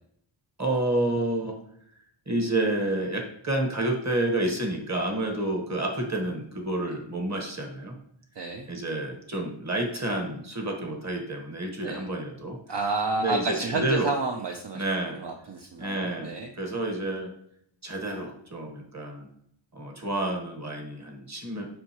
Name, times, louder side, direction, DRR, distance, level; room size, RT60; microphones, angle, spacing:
voice 1, 0.6-1.6 2.3-7.9 8.7-12.6 13.1-14.1 14.7-15.2 15.8-17.3 17.8-19.3 19.7-21.7, right 1 dB, 35° right, 2 dB, 1.4 m, -29 dB
voice 2, 8.4-8.7 11.8-12.1 12.7-14.8 15.1-16.5, right 3 dB, 55° right, 2 dB, 0.7 m, -30 dB
7.5 x 5.6 x 3.0 m, 0.70 s
wide cardioid pair, 95°, 49 cm